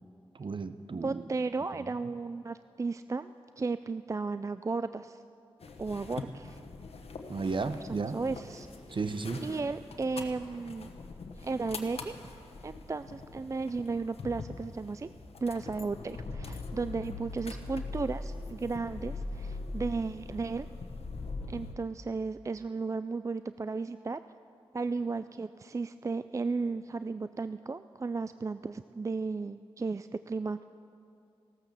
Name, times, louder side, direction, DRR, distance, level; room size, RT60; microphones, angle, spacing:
voice 1, 0.3-1.2 7.3-8.2 8.9-9.4, right 4 dB, 55° right, 11 dB, 0.8 m, -34 dB
voice 2, 0.9-5.2 5.8-6.6 7.9-8.7 9.4-10.9 11.4-12.1 12.6-15.1 15.4-20.7 21.5-24.2 24.7-30.6, right 4 dB, 30° right, 13 dB, 0.3 m, -34 dB
sound 1, 5.6-21.7, left 3 dB, 80° left, 1.1 m, -42 dB
15.5 x 13.0 x 6.9 m, 2.7 s
cardioid pair, 45°, 10 cm